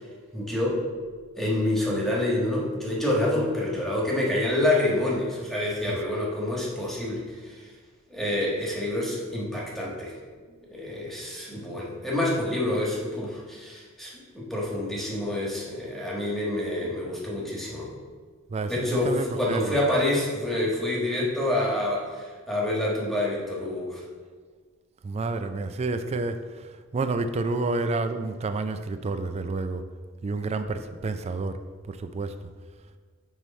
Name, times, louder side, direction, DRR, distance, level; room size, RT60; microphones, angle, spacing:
voice 1, 0.3-0.8 1.4-7.6 8.1-10.1 10.7-17.9 18.7-24.0, left 1 dB, ahead, -5 dB, 1.4 m, -27 dB
voice 2, 18.5-19.7 25.0-26.7 26.9-29.8 30.2-31.6 31.9-32.3, right 3 dB, 30° right, 9 dB, 0.4 m, -29 dB
9.0 x 3.2 x 4.2 m, 1.5 s
head